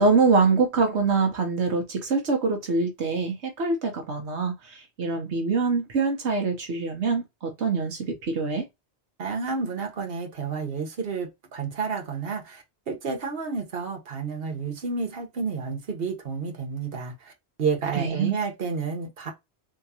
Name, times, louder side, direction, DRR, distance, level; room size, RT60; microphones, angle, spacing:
voice 1, 0.0-8.6 17.9-18.3, right 4 dB, 80° right, 1.2 m, -24 dB
voice 2, 9.2-17.3 17.6-19.3, right 5 dB, 60° right, 1.3 m, -30 dB
3.7 x 2.8 x 2.8 m
omnidirectional pair, 1.1 m